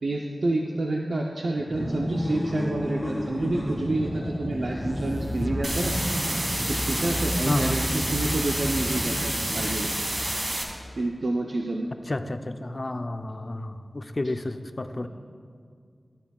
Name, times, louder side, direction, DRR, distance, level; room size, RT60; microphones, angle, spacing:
voice 1, 0.0-5.9 6.8-9.9 11.0-11.9, right 2 dB, 75° right, 0 dB, 0.6 m, -28 dB
sound 1, 1.7-10.2, equal, 15° left, 2.6 m, -32 dB
sound 2, 4.5-10.7, equal, 15° right, 0.9 m, -36 dB
sound 3, 5.6-10.6, right 1 dB, 45° right, 1.9 m, -29 dB
voice 2, 7.5-7.8 12.1-15.1, left 2 dB, 45° left, 8 dB, 0.5 m, -30 dB
14.0 x 10.5 x 2.4 m, 2.1 s
cardioid pair, 40°, 0 cm